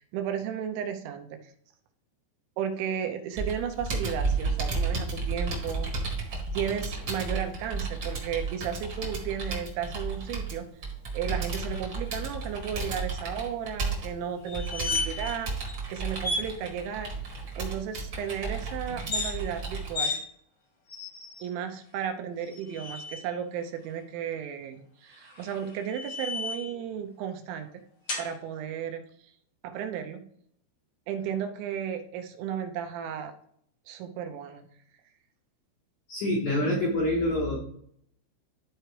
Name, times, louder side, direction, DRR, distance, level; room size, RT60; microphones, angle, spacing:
voice 1, 0.0-1.5 2.6-5.9 6.5-10.7 11.1-17.1 17.5-20.1 21.4-27.7 28.2-29.0 29.6-30.3 31.1-33.3 33.9-34.6, right 8 dB, 85° right, 6 dB, 2.9 m, -34 dB
Computer keyboard, 3.4-19.9, right 4 dB, 55° right, 1.4 m, -33 dB
sound 1, 14.5-15.4 15.7-15.8 16.2-16.5 18.9-19.3 19.9-20.2 20.9-21.5 22.4-23.2 25.1-26.7 28.1-28.3, left 3 dB, 60° left, 1.4 m, -33 dB
voice 2, 36.1-37.6, left 1 dB, 80° left, -2 dB, 1.7 m, -26 dB
13.0 x 4.5 x 3.2 m, 0.66 s
omnidirectional pair, 5.6 m